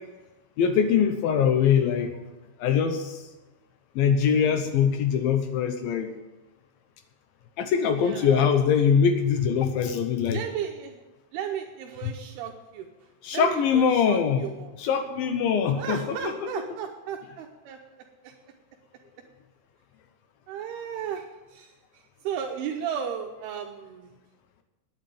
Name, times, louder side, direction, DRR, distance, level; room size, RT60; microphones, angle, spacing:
voice 1, 0.6-2.1 2.6-3.2 4.0-6.1 7.6-10.4 12.0-12.1 13.2-14.5 14.8-16.5, left 7 dB, 75° left, 7 dB, 2.4 m, -23 dB
voice 2, 8.0-8.4 10.3-10.9 11.3-12.9 13.3-14.7 15.8-17.8 20.5-21.3 21.5-21.7 22.2-24.1, right 8 dB, 80° right, 2 dB, 2.7 m, -34 dB
9.5 x 8.8 x 9.3 m, 1.1 s
omnidirectional pair, 4.7 m